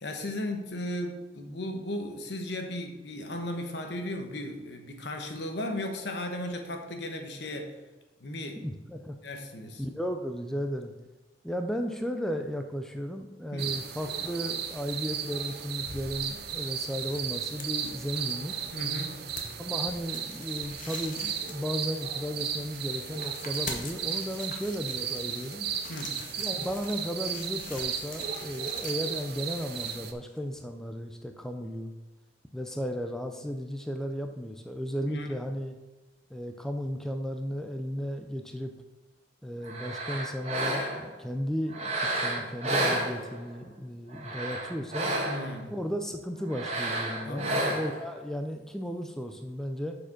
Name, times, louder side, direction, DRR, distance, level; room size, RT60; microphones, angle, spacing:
voice 1, 0.0-7.8 8.2-8.6 9.2-9.8 13.5-13.8 18.7-19.2 25.9-26.2 35.1-35.4 45.2-45.7 47.2-47.8, left 1 dB, 70° left, 4 dB, 1.1 m, -36 dB
voice 2, 8.6-9.2 9.8-10.9 11.4-18.6 19.6-25.7 26.4-31.9 32.5-35.8 36.3-38.7 39.4-45.1 45.7-50.0, equal, 5° left, 5 dB, 0.4 m, -35 dB
sound 1, 13.6-30.1, right 8 dB, 60° right, 0.6 m, -35 dB
sound 2, 15.7-30.6, left 4 dB, 45° left, 1.1 m, -46 dB
sound 3, 39.6-41.1 41.7-43.6 44.1-45.6 46.5-48.1, right 1 dB, 35° right, 1.4 m, -31 dB
6.7 x 5.0 x 5.9 m, 1.1 s
head